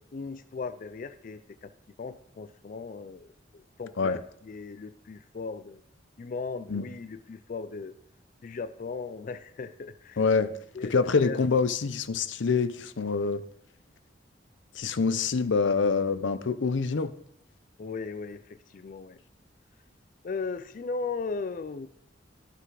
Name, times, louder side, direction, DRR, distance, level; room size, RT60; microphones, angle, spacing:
voice 1, 0.1-1.7 2.0-5.8 6.2-7.9 8.4-10.2 10.7-10.9 11.2-11.4 17.8-19.2 20.2-21.9, left 4 dB, 45° left, 12 dB, 0.4 m, -37 dB
voice 2, 10.2-10.5 10.8-13.4 14.7-17.1, left 4 dB, 85° left, 13 dB, 0.6 m, -26 dB
11.5 x 5.9 x 4.7 m, 0.70 s
head